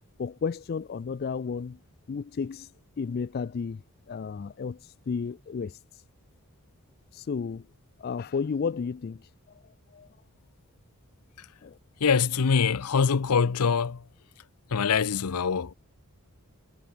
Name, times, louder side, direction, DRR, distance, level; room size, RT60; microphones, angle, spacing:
voice 1, 0.2-1.8 2.1-2.7 3.0-3.8 4.1-4.8 5.1-5.8 7.1-7.6 8.0-9.2 9.9-10.1 11.6-11.8, left 5 dB, 45° left, 0.3 m, -32 dB
voice 2, 12.0-14.0 14.7-15.7, left 6 dB, 85° left, 0.6 m, -24 dB
head